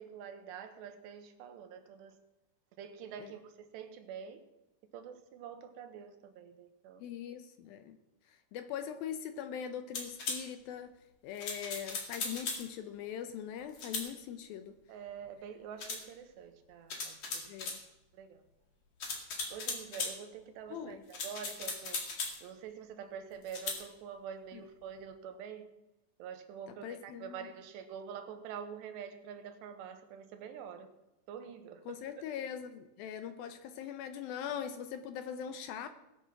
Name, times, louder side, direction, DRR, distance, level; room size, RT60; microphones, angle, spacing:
voice 1, 0.0-2.2 2.8-4.4 4.9-7.0 14.9-17.5 18.1-18.4 19.5-22.0 22.4-25.7 26.2-30.9 31.3-32.0, right 7 dB, 90° right, 3.4 m, -46 dB
voice 2, 7.0-8.0 8.5-10.9 11.2-14.8 17.5-17.8 20.7-21.0 24.5-24.6 26.8-27.5 31.9-35.9, left 8 dB, 75° left, 2.3 m, -41 dB
sound 1, 9.9-10.4 11.4-12.7 13.7-14.1 15.8-16.0 16.9-17.8 19.0-20.2 21.1-22.4 23.5-23.8, left 4 dB, 45° left, 2.8 m, -38 dB
19.5 x 7.8 x 5.9 m
omnidirectional pair, 4.7 m